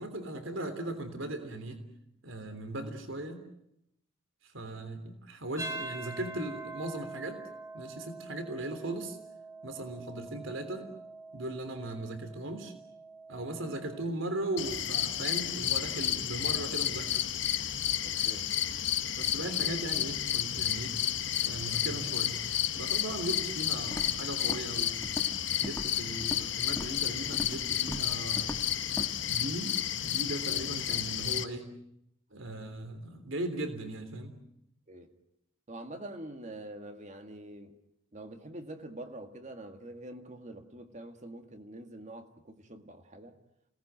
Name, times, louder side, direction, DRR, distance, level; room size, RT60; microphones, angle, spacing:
voice 1, 0.0-1.8 2.2-3.4 4.4-7.4 7.7-9.2 9.6-10.9 11.3-12.7 13.3-17.3 19.1-21.0 21.4-22.4 22.7-25.0 25.6-28.6 29.3-31.7 32.3-34.4, right 2 dB, 70° right, 9 dB, 3.3 m, -38 dB
sound 1, 5.6-14.1, right 2 dB, 15° right, 2.8 m, -45 dB
sound 2, 14.6-31.4, left 10 dB, 60° left, 1.3 m, -31 dB
voice 2, 18.0-18.5 34.9-35.1 35.7-37.8 38.1-43.4, right 1 dB, 35° right, 6 dB, 2.1 m, -45 dB
Walk footsteps, 23.9-24.2 24.5-24.8 25.0-25.4 25.6-26.5 26.8-27.0 27.3-27.6 27.9-28.1 28.4-28.6 29.0-29.1, equal, 10° left, 1.2 m, -39 dB
29.0 x 19.0 x 9.2 m, 0.77 s
head